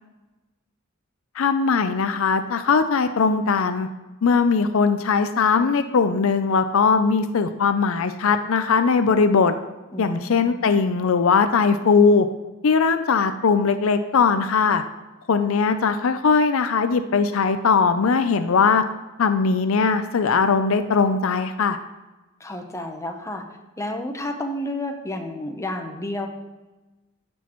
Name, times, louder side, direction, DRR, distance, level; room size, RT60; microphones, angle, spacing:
voice 1, 1.4-3.9 4.2-9.5 10.0-12.3 12.6-14.8 15.3-18.8 19.2-21.8, left 5 dB, 70° left, 10 dB, 0.5 m, -20 dB
voice 2, 9.9-10.6 22.4-23.4 23.8-26.3, left 1 dB, 15° left, 4 dB, 0.8 m, -31 dB
15.0 x 6.3 x 3.0 m, 1.1 s
head